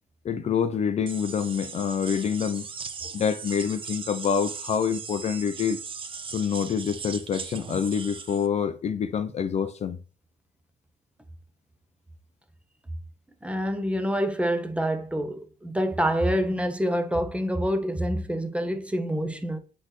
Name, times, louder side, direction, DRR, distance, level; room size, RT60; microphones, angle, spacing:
voice 1, 0.2-2.7 3.0-5.8 6.3-10.0, left 7 dB, 40° left, 0.6 m, -26 dB
sound 1, 1.1-8.5, right 5 dB, 30° right, 0.8 m, -38 dB
voice 2, 13.4-19.6, equal, 5° right, 0.9 m, -27 dB
7.8 x 4.1 x 3.2 m
cardioid pair, 110°, 17 cm